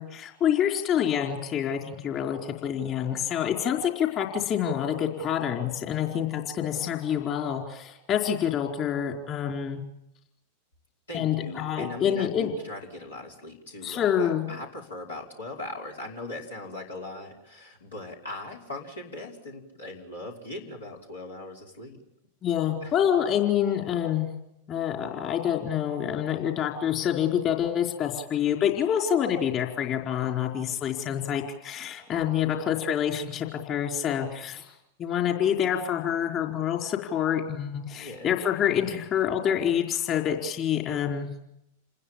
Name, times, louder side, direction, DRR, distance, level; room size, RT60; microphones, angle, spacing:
voice 1, 0.0-9.8 11.1-12.5 13.8-14.5 22.4-24.3 24.7-34.7 35.0-41.3, left 9 dB, 35° left, 1 dB, 4.6 m, -27 dB
voice 2, 11.1-22.0 22.8-22.9 37.9-38.3, left 2 dB, 85° left, -1 dB, 5.3 m, -40 dB
28.5 x 20.5 x 7.4 m, 0.85 s
figure-of-eight pair, 95°, 0 cm